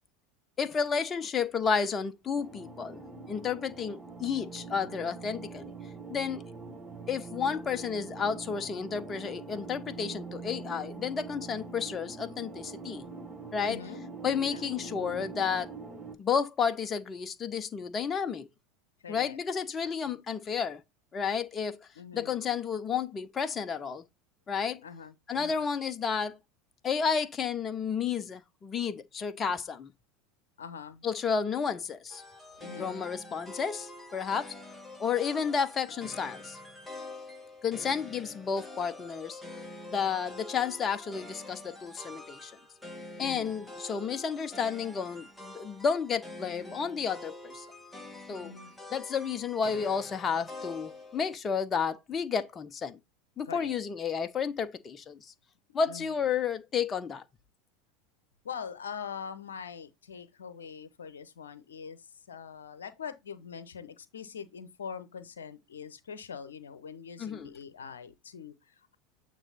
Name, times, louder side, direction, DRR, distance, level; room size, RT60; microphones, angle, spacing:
voice 1, 0.6-3.0 3.3-5.7 6.1-6.4 7.1-13.1 13.5-13.8 14.2-15.7 16.2-18.5 19.1-20.8 21.1-21.9 22.1-24.0 24.5-24.8 25.3-26.4 26.8-29.9 31.0-32.2 32.8-34.5 35.0-36.6 37.6-39.4 39.9-42.5 43.2-47.7 48.3-48.5 48.9-53.0 53.4-55.3 55.7-57.2 67.2-67.5, left 6 dB, 25° left, 0.7 m, -31 dB
sound 1, 2.3-16.1, right 4 dB, 20° right, 1.4 m, -44 dB
voice 2, 13.6-14.0 14.4-14.6 19.0-19.4 20.1-20.2 22.0-22.4 24.8-25.6 30.6-31.1 32.6-32.9 43.2-43.6 48.4-48.7 53.5-53.8 55.9-56.3 58.4-68.9, left 7 dB, 70° left, 0.8 m, -43 dB
sound 2, 32.1-51.4, left 2 dB, 5° left, 1.3 m, -46 dB
8.9 x 3.0 x 4.2 m
figure-of-eight pair, 75°, 0 cm